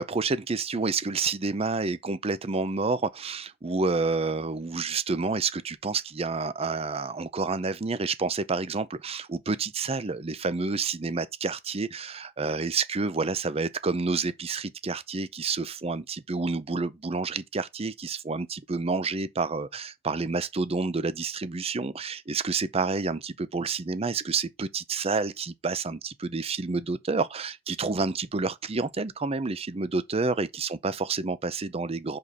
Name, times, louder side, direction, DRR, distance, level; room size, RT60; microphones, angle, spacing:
voice 1, 0.0-32.2, right 4 dB, 30° right, 0.5 m, -29 dB
5.3 x 4.1 x 5.3 m
head